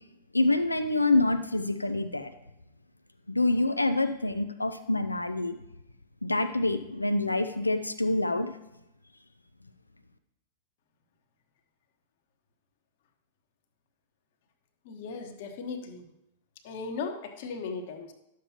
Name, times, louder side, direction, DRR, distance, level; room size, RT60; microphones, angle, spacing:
voice 1, 0.3-2.3 3.3-5.6 6.2-8.5, left 2 dB, 90° left, 9 dB, 0.5 m, -26 dB
voice 2, 14.8-16.1 16.6-18.1, left 4 dB, 55° left, 5 dB, 1.2 m, -37 dB
11.5 x 7.3 x 2.9 m, 0.87 s
figure-of-eight pair, 95°, 0 cm